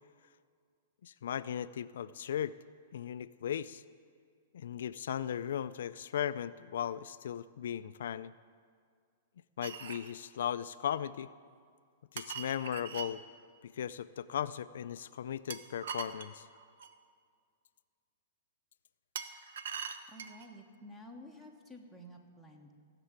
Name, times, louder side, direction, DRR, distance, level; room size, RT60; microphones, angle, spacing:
voice 1, 1.0-2.6 2.9-3.8 4.5-8.3 9.6-11.3 12.1-13.2 13.6-16.5, left 9 dB, 75° left, 13 dB, 0.4 m, -37 dB
sound 1, 9.6-10.1 12.2-13.1 15.5-16.9 19.1-20.5, right 6 dB, 70° right, 0.9 m, -42 dB
voice 2, 20.1-22.7, equal, 5° right, 3 dB, 1.3 m, -51 dB
16.0 x 6.8 x 8.9 m, 2.1 s
hypercardioid pair, 155°, 0 cm